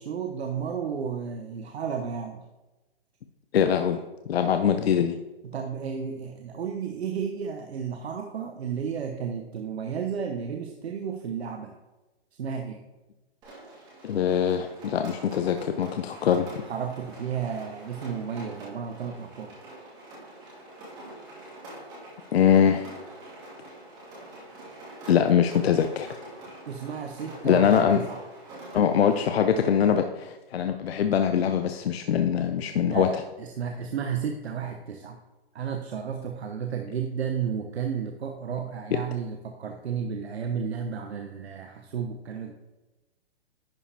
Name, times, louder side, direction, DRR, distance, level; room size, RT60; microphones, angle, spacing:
voice 1, 0.0-2.4 5.4-11.7 12.4-12.8 16.6-19.6 26.7-28.2 32.8-35.2 35.5-42.5, right 7 dB, 90° right, 4 dB, 0.8 m, -32 dB
voice 2, 3.5-4.0 4.3-5.2 14.0-16.6 22.3-22.9 25.1-26.1 27.4-28.0 28.7-33.1, left 8 dB, 75° left, 7 dB, 0.6 m, -23 dB
Rain, 13.4-29.2, right 1 dB, 15° right, 1.6 m, -45 dB
10.5 x 4.9 x 3.4 m, 1.1 s
hypercardioid pair, 170°, 31 cm